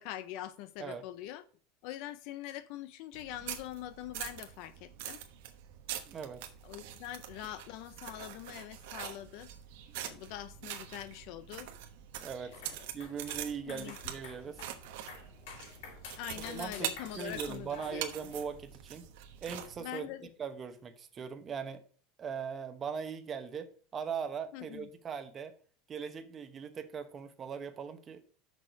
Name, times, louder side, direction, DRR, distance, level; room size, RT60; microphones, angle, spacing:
voice 1, 0.0-1.4 1.8-5.2 6.6-9.5 9.9-11.7 13.7-14.0 16.2-18.0 19.8-20.3 24.5-24.9, left 13 dB, 55° left, 0.5 m, -43 dB
sound 1, 3.1-19.8, right 11 dB, 70° right, 1.1 m, -44 dB
voice 2, 6.1-6.4 10.0-10.1 12.2-14.6 16.3-19.1 19.4-20.1 20.4-21.8 22.2-25.5 25.9-28.2, right 6 dB, 25° right, 0.9 m, -40 dB
sound 2, 12.4-18.4, left 5 dB, 80° left, 3.6 m, -50 dB
6.4 x 6.3 x 5.1 m
supercardioid pair, 155°, 0 cm